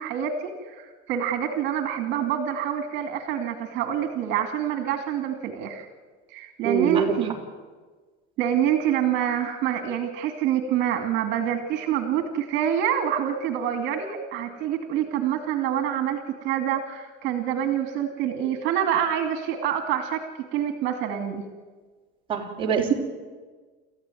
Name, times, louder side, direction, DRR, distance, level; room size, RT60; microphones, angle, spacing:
voice 1, 0.0-5.9 6.3-7.3 8.4-20.2 20.5-21.4, right 9 dB, 60° right, 6 dB, 2.5 m, -26 dB
voice 2, 6.6-7.2 22.3-22.9, right 7 dB, 25° right, -2 dB, 3.6 m, -24 dB
29.0 x 14.5 x 9.2 m, 1.4 s
cardioid pair, 155°, 21 cm